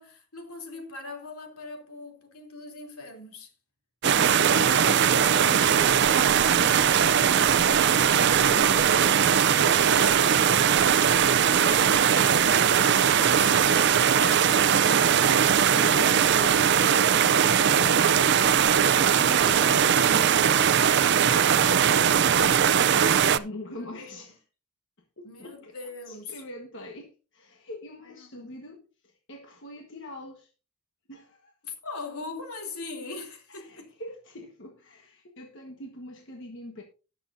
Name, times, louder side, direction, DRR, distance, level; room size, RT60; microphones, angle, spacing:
voice 1, 0.0-3.5 9.4-11.8 12.2-15.0 21.4-21.9 23.6-24.2 25.2-26.4 28.0-28.6 31.6-33.9, left 3 dB, 80° left, 3.1 m, -41 dB
voice 2, 4.0-8.8 11.4-12.8 15.7-20.8 21.7-24.4 25.2-25.7 26.1-28.8 29.3-30.5 31.1-31.5 33.5-36.8, left 2 dB, 55° left, 1.4 m, -42 dB
sound 1, 4.0-23.4, right 8 dB, 50° right, 0.5 m, -20 dB
18.5 x 7.1 x 2.7 m
head